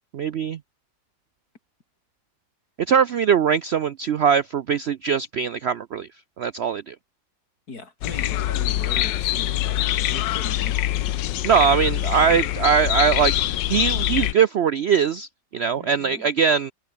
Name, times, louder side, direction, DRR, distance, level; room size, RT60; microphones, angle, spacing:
voice 1, 0.1-0.6 2.9-6.1 6.4-6.9 11.4-13.3 13.7-16.7, right 7 dB, 85° right, 0.5 m, -21 dB
voice 2, 7.7-11.4 11.7-11.8 12.3-12.5 15.8-16.3, left 3 dB, 60° left, 4.1 m, -39 dB
sound 1, 8.0-14.3, left 13 dB, 90° left, 1.4 m, -24 dB
omnidirectional pair, 1.9 m